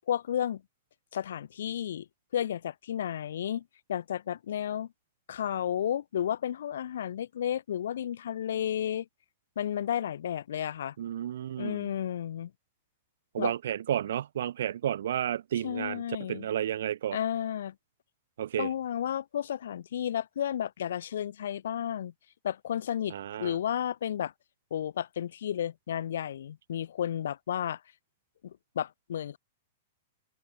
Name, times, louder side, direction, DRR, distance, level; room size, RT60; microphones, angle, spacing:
voice 1, 0.1-0.6 1.1-2.1 2.3-3.6 3.9-4.9 5.3-9.1 9.6-10.9 11.6-12.5 13.4-13.5 15.6-16.5 17.1-17.7 18.6-22.1 22.4-23.1 23.4-24.3 24.7-27.8 28.4-29.4, left 10 dB, 80° left, 1.0 m, -32 dB
voice 2, 11.0-11.9 13.3-16.0 16.3-17.2 18.4-18.7 23.1-23.6, right 10 dB, 80° right, 0.6 m, -32 dB
open air
hypercardioid pair, 145°, 0 cm